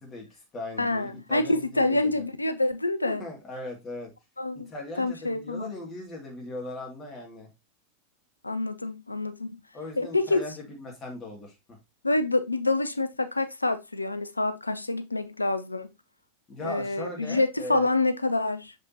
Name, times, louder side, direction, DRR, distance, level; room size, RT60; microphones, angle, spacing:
voice 1, 0.0-2.1 3.1-4.1 4.5-7.5 9.7-11.8 16.5-17.9, left 2 dB, 25° left, 2.5 m, -39 dB
voice 2, 0.8-3.3 4.4-4.7 5.0-5.8 8.4-9.6 10.0-10.4 12.0-15.9 16.6-18.7, left 2 dB, 80° left, 0.6 m, -27 dB
6.6 x 5.2 x 2.9 m
figure-of-eight pair, 90°, 0 cm